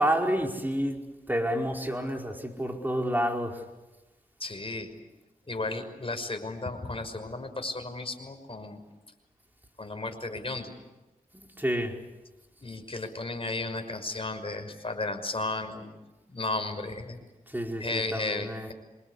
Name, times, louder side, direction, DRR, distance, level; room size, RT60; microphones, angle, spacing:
voice 1, 0.0-3.6 11.6-12.0 17.5-18.7, equal, 10° right, 4.7 m, -29 dB
voice 2, 4.4-4.9 5.5-8.8 9.8-10.7 12.6-15.9 16.3-17.2 17.8-18.7, left 2 dB, 40° left, 5.9 m, -34 dB
26.5 x 26.5 x 8.4 m
cardioid pair, 50°, 15 cm